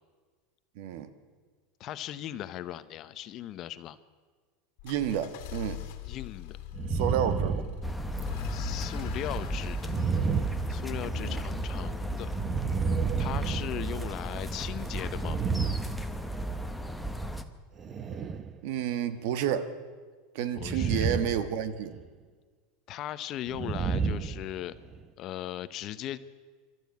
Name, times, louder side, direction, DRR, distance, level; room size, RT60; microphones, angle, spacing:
voice 1, 0.8-1.1 4.8-5.8 6.9-7.6 11.1-11.4 18.6-19.7 20.3-22.0, right 9 dB, 65° right, 12 dB, 1.5 m, -30 dB
voice 2, 1.8-4.0 6.1-6.6 8.5-9.9 10.7-12.3 13.2-15.4 20.5-21.1 22.9-24.7 25.2-26.2, left 13 dB, 40° left, 13 dB, 0.9 m, -38 dB
sound 1, 4.8-11.7, left 12 dB, 65° left, 1.9 m, -41 dB
sound 2, 6.7-8.4 9.8-11.3 12.2-14.4 15.1-16.6 17.8-18.5 20.6-21.5 21.7-22.1 23.5-25.0, right 5 dB, 25° right, 0.9 m, -31 dB
sound 3, 7.8-17.4, right 1 dB, ahead, 1.1 m, -35 dB
26.0 x 12.5 x 8.5 m, 1.5 s
supercardioid pair, 145°, 0 cm